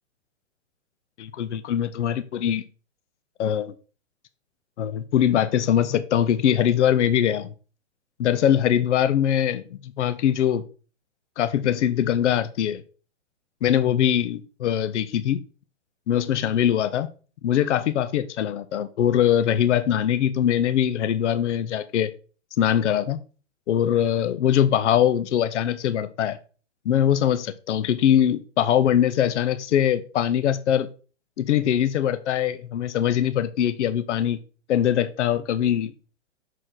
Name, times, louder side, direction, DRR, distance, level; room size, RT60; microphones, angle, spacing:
voice 1, 1.2-2.6 3.4-3.7 4.8-7.5 8.2-10.6 11.4-12.8 13.6-15.4 16.1-17.1 17.4-22.1 22.6-23.2 23.7-26.4 26.9-30.9 31.4-34.4 34.7-35.9, left 10 dB, 70° left, 0.7 m, -22 dB
6.3 x 4.5 x 3.8 m
hypercardioid pair, 150°, 37 cm